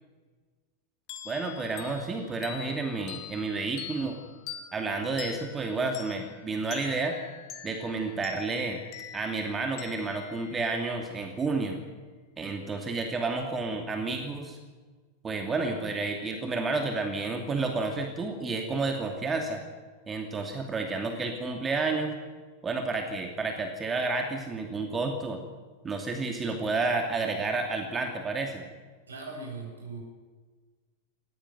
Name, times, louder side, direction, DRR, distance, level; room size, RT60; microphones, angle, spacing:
sound 1, 1.1-11.4, left 10 dB, 40° left, 2.6 m, -45 dB
voice 1, 1.2-4.2 4.7-7.2 7.6-8.8 9.1-11.8 12.4-14.6 15.2-19.6 20.1-22.1 22.6-25.4 25.8-28.6, right 3 dB, 20° right, 4 dB, 2.7 m, -30 dB
voice 2, 29.1-30.0, right 3 dB, 70° right, 1 dB, 7.9 m, -39 dB
19.0 x 17.0 x 9.4 m, 1.4 s
figure-of-eight pair, 90°, 0 cm